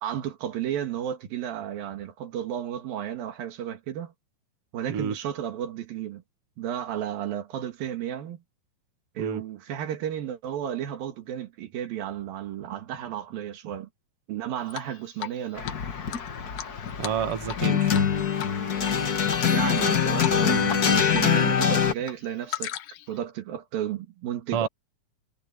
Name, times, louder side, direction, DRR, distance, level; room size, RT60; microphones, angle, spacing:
voice 1, 0.0-4.1 4.7-6.2 6.6-8.4 9.2-13.9 14.3-15.7 19.5-22.7 23.1-24.7, right 10 dB, 85° right, 3.6 m, -33 dB
Drip, 14.7-15.4 15.7-15.8 16.1-17.7 17.9-18.1 18.4-18.9 19.3-19.9 20.2-20.4 20.7-21.7 22.0-23.1, left 12 dB, 75° left, 2.4 m, -36 dB
sound 1, 15.6-21.9, left 7 dB, 50° left, 1.1 m, -24 dB
voice 2, 17.0-18.1 24.5-24.7, right 8 dB, 50° right, 2.4 m, -29 dB
omnidirectional pair, 4.0 m